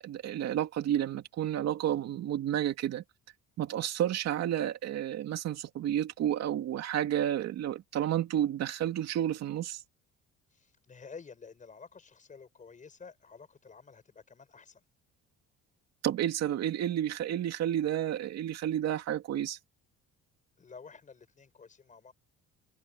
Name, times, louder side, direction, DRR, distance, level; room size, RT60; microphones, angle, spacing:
voice 1, 0.0-3.0 3.6-9.8 16.0-19.6, right 11 dB, 60° right, 2.6 m, -31 dB
voice 2, 10.5-14.8 20.6-22.1, left 5 dB, 25° left, 6.0 m, -51 dB
cardioid pair, 145°, 30 cm